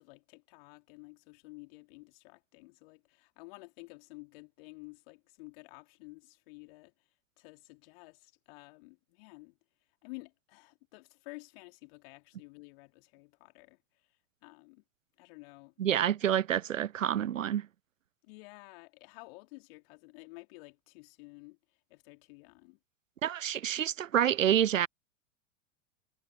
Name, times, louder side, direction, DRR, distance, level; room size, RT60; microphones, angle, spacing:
voice 1, 0.0-6.9 7.4-9.6 10.0-13.8 14.4-14.8 15.2-16.1 18.2-21.6 21.9-22.8, left 28 dB, 50° left, 3.0 m, -52 dB
voice 2, 15.8-17.7 23.2-24.9, right 10 dB, 80° right, 0.6 m, -28 dB
figure-of-eight pair, 85°, 38 cm